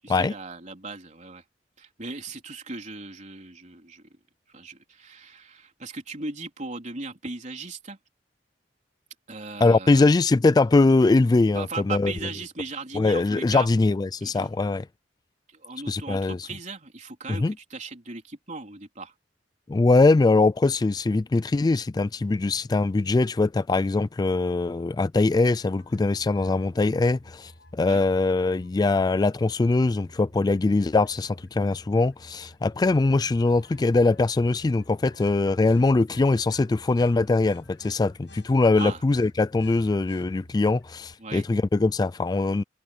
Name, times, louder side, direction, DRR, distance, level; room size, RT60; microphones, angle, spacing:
voice 1, 0.0-1.4 1.8-4.1 4.5-8.0 9.3-10.1 11.5-13.7 14.2-14.5 15.5-19.1 27.8-28.0 38.7-39.0 41.2-41.5, right 3 dB, 40° right, 3.7 m, -38 dB
voice 2, 9.6-12.1 12.9-14.8 15.9-16.5 17.3-17.5 19.7-42.6, left 3 dB, 20° left, 0.3 m, -22 dB
sound 1, 25.8-41.1, left 1 dB, 70° left, 7.4 m, -51 dB
head